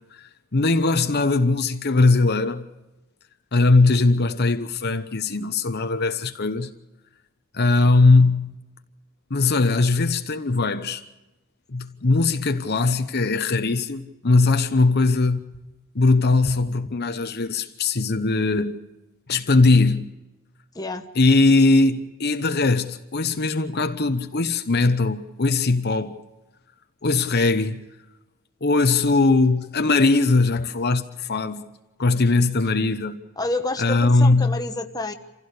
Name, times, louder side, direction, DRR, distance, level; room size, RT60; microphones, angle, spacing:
voice 1, 0.1-2.7 3.5-6.7 7.5-8.6 9.3-11.0 11.7-15.4 15.9-18.8 19.3-20.1 21.1-26.1 27.0-27.8 28.6-31.6 32.0-33.2 33.8-34.6, left 3 dB, 50° left, 0.9 m, -20 dB
voice 2, 20.7-21.1 33.4-35.1, left 2 dB, 15° left, 1.2 m, -28 dB
26.5 x 16.0 x 6.8 m
head